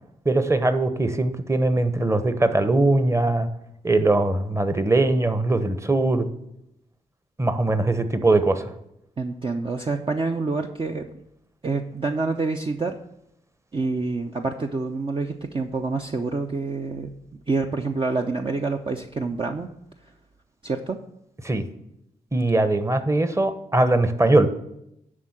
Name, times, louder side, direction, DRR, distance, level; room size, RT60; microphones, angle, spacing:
voice 1, 0.2-3.5 3.8-6.3 7.4-8.7 21.4-21.7 22.3-24.5, right 2 dB, 15° right, 10 dB, 1.0 m, -21 dB
voice 2, 9.2-11.1 11.6-13.0 13.7-17.1 17.5-19.7 20.6-21.0, right 3 dB, 35° right, 3 dB, 0.7 m, -27 dB
11.0 x 3.8 x 7.4 m, 0.81 s
supercardioid pair, 50°, 16 cm